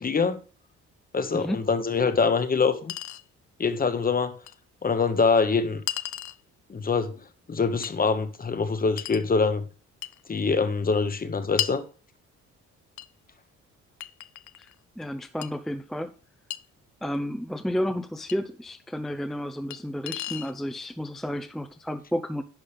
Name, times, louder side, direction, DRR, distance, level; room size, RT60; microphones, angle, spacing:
voice 1, 0.0-0.4 1.1-2.9 3.6-4.4 4.8-5.8 6.7-7.2 7.5-9.6 10.3-11.8, left 4 dB, 30° left, 1.0 m, -24 dB
Chink clink, 1.9-2.0 2.9-3.2 4.5-4.6 5.9-6.4 7.8-8.0 9.0-9.3 10.0-10.2 11.6-11.8 13.0-13.1 14.0-14.7 15.4-15.5 16.5-16.6 18.3-18.4 19.7-19.8 20.1-20.5, left 14 dB, 70° left, 0.5 m, -33 dB
voice 2, 15.0-16.1 17.0-22.4, equal, ahead, 0.5 m, -31 dB
10.0 x 5.5 x 3.3 m
cardioid pair, 90°, 30 cm